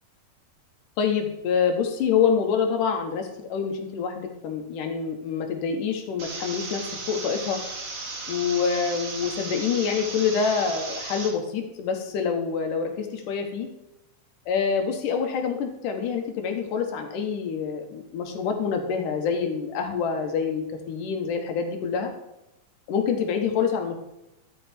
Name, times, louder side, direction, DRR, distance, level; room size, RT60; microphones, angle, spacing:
voice 1, 1.0-6.8 7.1-7.6 8.3-13.7 14.5-22.1 22.9-24.0, left 6 dB, 80° left, 4 dB, 2.6 m, -26 dB
sound 1, 6.2-11.3, right 3 dB, 60° right, 2.6 m, -35 dB
11.5 x 4.5 x 4.3 m, 0.89 s
omnidirectional pair, 3.7 m